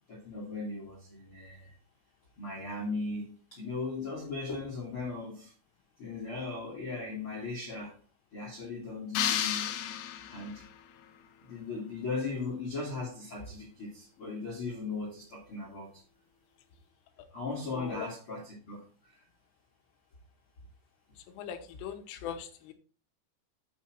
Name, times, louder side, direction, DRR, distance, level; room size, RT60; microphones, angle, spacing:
voice 1, 0.1-1.7 2.4-5.5 6.0-8.0 8.3-10.7 11.4-16.0 17.3-19.2, left 3 dB, 45° left, -4 dB, 1.9 m, -38 dB
sound 1, 9.1-10.7, left 10 dB, 75° left, 2.8 m, -32 dB
voice 2, 17.7-18.1 21.4-22.7, left 9 dB, 90° left, 5 dB, 3.4 m, -40 dB
8.4 x 6.2 x 4.4 m, 0.40 s
omnidirectional pair, 5.7 m